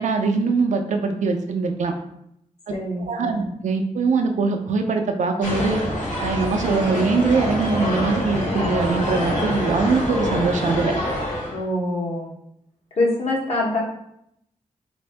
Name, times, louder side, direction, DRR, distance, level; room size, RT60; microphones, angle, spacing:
voice 1, 0.0-1.9 2.7-2.8 3.1-5.8 6.2-10.9, right 4 dB, 70° right, 5 dB, 0.5 m, -22 dB
voice 2, 2.7-3.5 11.5-12.3 13.0-13.8, left 2 dB, 55° left, -3 dB, 1.0 m, -25 dB
sound 1, 5.4-11.6, left 1 dB, 75° left, 1.2 m, -25 dB
3.5 x 2.5 x 3.3 m, 0.76 s
wide cardioid pair, 140°, 13 cm